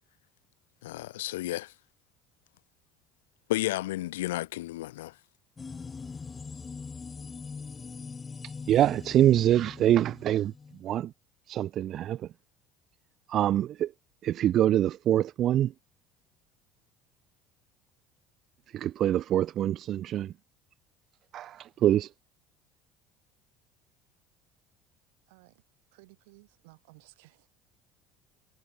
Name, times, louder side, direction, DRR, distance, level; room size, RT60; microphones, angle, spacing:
voice 1, 0.8-1.7 3.5-5.2, left 16 dB, 80° left, 0.3 m, -32 dB
sound 1, 5.6-10.8, left 5 dB, 30° left, 2.1 m, -42 dB
voice 2, 8.4-10.5 10.8-11.1 11.5-12.3 13.3-13.9 14.2-15.7 18.7-20.3 21.3-22.1, right 12 dB, 55° right, 0.8 m, -25 dB
voice 3, 25.3-25.6 25.9-27.5, right 25 dB, 75° right, 5.4 m, -57 dB
hypercardioid pair, 65°, 0 cm